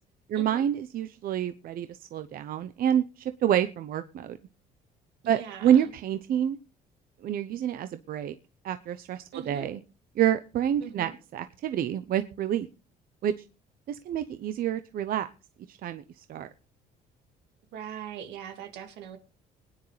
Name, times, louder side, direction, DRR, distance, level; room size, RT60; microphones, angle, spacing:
voice 1, 0.3-4.4 5.3-6.6 7.2-8.3 8.6-9.8 10.2-12.7 13.2-13.3 13.9-15.3 15.7-16.5, right 10 dB, 60° right, 0.8 m, -28 dB
voice 2, 5.2-5.9 9.3-9.7 10.8-11.2 17.7-19.2, right 9 dB, 85° right, 2.2 m, -41 dB
22.0 x 9.7 x 3.3 m
cardioid pair, 110°, 17 cm